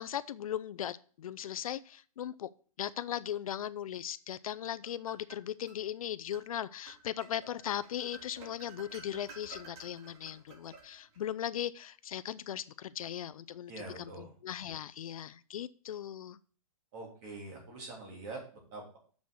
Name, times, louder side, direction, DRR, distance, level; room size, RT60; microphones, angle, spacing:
voice 1, 0.0-2.5 2.8-13.7 14.0-16.4, left 10 dB, 65° left, 15 dB, 0.5 m, -38 dB
sound 1, 4.5-5.8 6.3-6.5 6.9-11.3, right 3 dB, 45° right, 3.5 m, -53 dB
voice 2, 13.7-14.3 16.9-19.0, right 2 dB, 30° right, -1 dB, 3.2 m, -45 dB
7.1 x 6.2 x 6.3 m, 0.42 s
hypercardioid pair, 170°, 19 cm